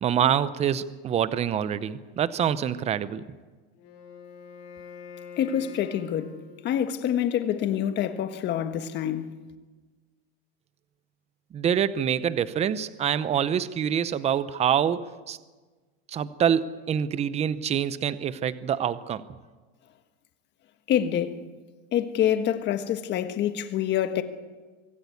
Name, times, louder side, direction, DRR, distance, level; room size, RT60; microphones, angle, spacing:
voice 1, 0.0-3.2 11.5-15.4 16.1-19.2, right 9 dB, 20° right, 0.7 m, -26 dB
Wind instrument woodwind instrument, 3.7-7.0, left 6 dB, 55° left, 8.0 m, -45 dB
voice 2, 5.4-6.4 6.6-9.4 20.9-21.4 21.9-24.2, left 10 dB, 35° left, 1.5 m, -26 dB
24.5 x 15.0 x 8.4 m
supercardioid pair, 145°, 32 cm